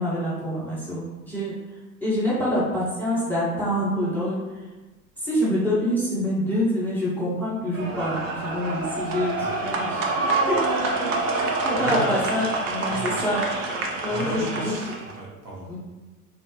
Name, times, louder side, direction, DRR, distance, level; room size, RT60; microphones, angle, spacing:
voice 1, 0.0-1.6 2.0-4.4 5.2-9.5 9.8-10.2 10.5-10.6 11.6-13.4 14.0-14.4 15.7-15.8, equal, 5° left, -10 dB, 0.3 m, -26 dB
sound 1, 7.7-15.1, right 3 dB, 55° right, 0.6 m, -27 dB
voice 2, 11.7-12.2 12.9-13.2 14.1-15.8, right 2 dB, 90° right, -4 dB, 0.9 m, -33 dB
3.0 x 2.2 x 2.9 m, 1.1 s
figure-of-eight pair, 85°, 45 cm